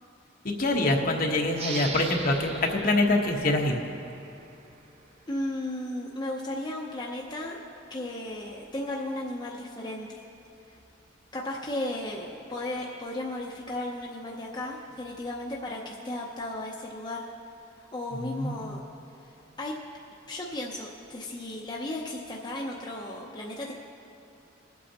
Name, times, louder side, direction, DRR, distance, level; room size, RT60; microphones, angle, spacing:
voice 1, 0.4-3.8 18.1-18.8, left 2 dB, 50° left, 1 dB, 1.1 m, -25 dB
sound 1, 1.5-4.8, right 4 dB, 35° right, 0.6 m, -40 dB
voice 2, 5.3-7.6 7.9-10.2 10.7-10.8 11.3-17.3 17.8-18.8 19.6-19.7 20.3-23.7, left 1 dB, 25° left, -3 dB, 0.7 m, -35 dB
23.0 x 8.3 x 2.9 m, 2.8 s
head